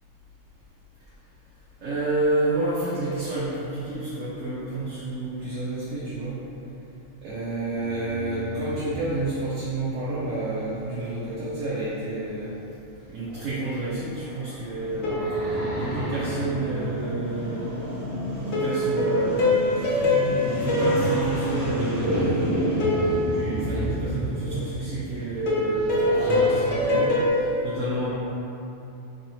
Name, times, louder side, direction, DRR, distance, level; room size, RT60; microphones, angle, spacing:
voice 1, 1.8-6.4 7.2-12.6 13.1-15.1 15.7-17.7 18.4-20.0 20.4-22.6 23.3-28.1, right 2 dB, 75° right, -10 dB, 1.0 m, -30 dB
sound 1, 7.7-9.4 12.3-12.4 13.2-13.5 14.1-16.5 20.3-20.4 21.1-24.6 25.8-27.0, right 1 dB, 40° left, 0.4 m, -32 dB
sound 2, 14.8-26.1, equal, 35° right, 1.2 m, -32 dB
sound 3, 15.0-16.5 18.5-22.2 22.8-24.3 25.5-27.3, left 1 dB, 65° left, 0.9 m, -25 dB
3.2 x 2.6 x 2.9 m, 2.9 s
omnidirectional pair, 1.3 m